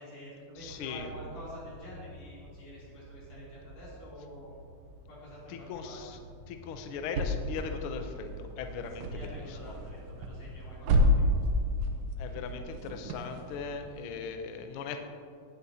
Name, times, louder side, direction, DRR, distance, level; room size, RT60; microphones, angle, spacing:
voice 1, 0.0-4.5 5.1-6.0 8.8-10.9 11.1-11.4, equal, 65° left, -7 dB, 4.4 m, -48 dB
voice 2, 0.6-1.1 5.5-6.2 6.5-9.7 12.2-15.0, left 5 dB, 80° left, 6 dB, 1.2 m, -39 dB
sound 1, 0.6-14.1, equal, 70° right, 1.8 m, -33 dB
17.0 x 8.1 x 2.8 m, 2.3 s
omnidirectional pair, 3.3 m